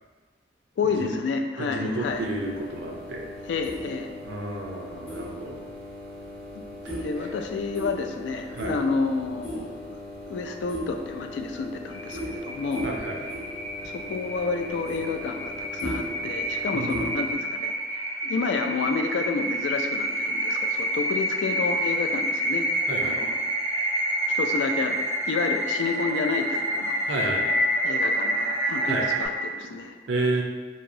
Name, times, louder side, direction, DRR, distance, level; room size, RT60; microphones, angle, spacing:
voice 1, 0.8-2.3 3.5-4.1 6.5-6.6 7.0-9.8 10.3-12.9 13.8-22.7 23.0-23.4 24.3-27.0 27.8-30.0, left 4 dB, 75° left, 5 dB, 0.3 m, -30 dB
voice 2, 1.6-3.3 4.3-5.6 6.8-6.9 8.5-8.7 12.8-13.2 16.7-17.1 22.9-23.2 27.1-27.5 28.9-29.1 30.1-30.4, right 2 dB, 85° right, 1 dB, 0.5 m, -30 dB
sound 1, 2.0-17.3, equal, 35° left, 1.2 m, -37 dB
sound 2, 11.9-29.3, right 1 dB, 15° left, 0.8 m, -28 dB
2.9 x 2.7 x 2.6 m, 1.3 s
head